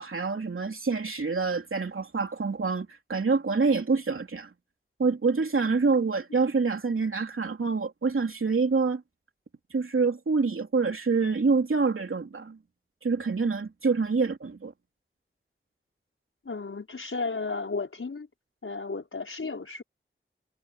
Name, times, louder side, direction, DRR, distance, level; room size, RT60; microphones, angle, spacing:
voice 1, 0.0-4.5 5.0-9.0 9.7-12.6 13.0-14.7, right 4 dB, 80° right, 3.2 m, -26 dB
voice 2, 16.5-18.3 18.6-19.8, left 4 dB, 80° left, 5.2 m, -33 dB
wide cardioid pair, 75°, 21 cm